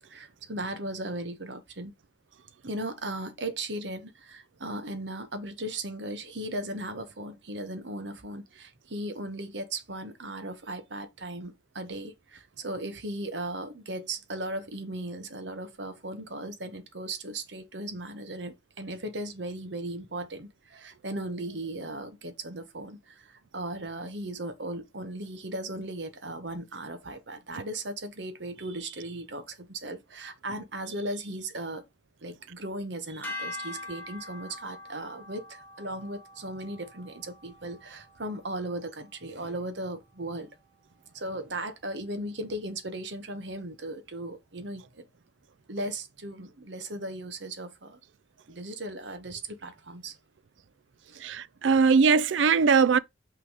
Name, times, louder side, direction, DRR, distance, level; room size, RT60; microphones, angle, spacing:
voice 1, 0.0-1.9 2.6-31.8 32.2-40.5 41.1-45.1 45.7-48.0 48.5-50.2 51.1-51.3, right 1 dB, 70° right, 1.3 m, -37 dB
sound 1, 33.2-39.6, left 2 dB, 10° left, 1.7 m, -44 dB
voice 2, 51.2-53.0, right 5 dB, 85° right, 0.4 m, -21 dB
6.2 x 3.7 x 4.8 m
head